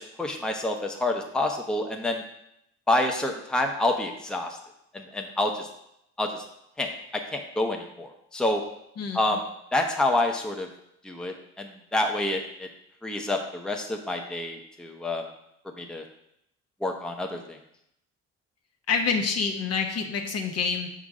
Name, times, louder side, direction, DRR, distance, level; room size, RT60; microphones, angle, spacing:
voice 1, 0.0-2.2 2.9-4.5 4.9-5.7 6.2-6.4 6.8-6.9 7.3-8.6 9.1-9.4 9.7-10.7 11.0-12.7 13.0-15.2 15.8-16.0 16.8-17.4, left 2 dB, 5° left, 2 dB, 0.7 m, -28 dB
voice 2, 9.0-9.4 18.9-20.9, left 5 dB, 55° left, 4 dB, 1.0 m, -27 dB
6.2 x 3.9 x 4.8 m, 0.77 s
cardioid pair, 90°, 30 cm